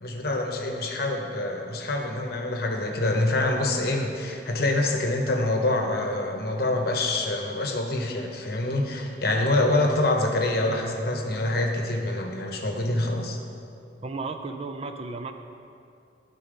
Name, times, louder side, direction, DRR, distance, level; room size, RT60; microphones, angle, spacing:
voice 1, 0.0-13.4, left 2 dB, 55° left, 2 dB, 0.9 m, -26 dB
voice 2, 14.0-15.3, right 3 dB, 30° right, 6 dB, 0.4 m, -34 dB
11.0 x 4.1 x 5.0 m, 2.5 s
head